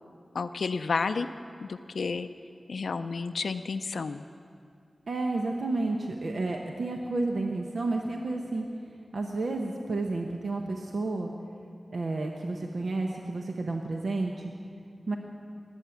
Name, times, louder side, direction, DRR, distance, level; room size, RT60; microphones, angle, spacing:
voice 1, 0.3-1.3 1.6-2.3 2.7-4.2, left 4 dB, 90° left, 8 dB, 0.4 m, -31 dB
voice 2, 5.1-8.7 9.1-11.3 11.9-14.3 15.1-15.2, right 2 dB, 80° right, 2 dB, 0.9 m, -31 dB
20.5 x 8.2 x 7.1 m, 2.3 s
cardioid pair, 45°, 0 cm